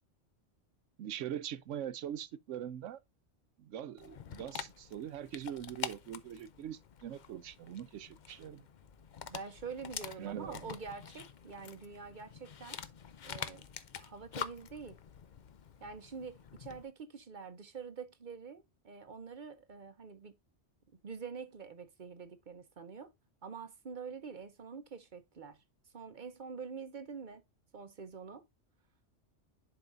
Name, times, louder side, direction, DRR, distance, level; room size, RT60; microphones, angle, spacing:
voice 1, 1.0-3.0 3.6-8.7 10.2-10.7, right 10 dB, 80° right, 1.0 m, -42 dB
Dog, 4.0-16.9, left 7 dB, 50° left, 0.6 m, -46 dB
voice 2, 9.3-12.8 13.2-13.7 14.0-15.0 15.8-20.4 21.0-23.1 23.4-25.6 25.9-27.4 27.7-28.4, right 5 dB, 45° right, 0.8 m, -46 dB
10.5 x 4.8 x 2.5 m
omnidirectional pair, 1.2 m